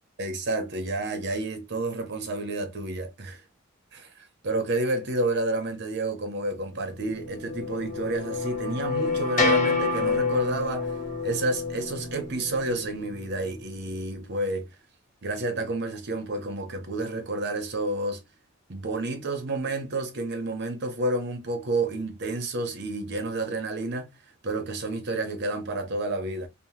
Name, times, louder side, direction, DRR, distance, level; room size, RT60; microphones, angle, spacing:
voice 1, 0.2-3.4 3.9-10.9 11.2-14.7 15.2-18.2 18.7-24.1 24.4-26.5, right 2 dB, 60° right, 0.8 m, -30 dB
sound 1, 6.8-13.3, left 4 dB, 40° left, 0.9 m, -28 dB
2.8 x 2.1 x 3.1 m
head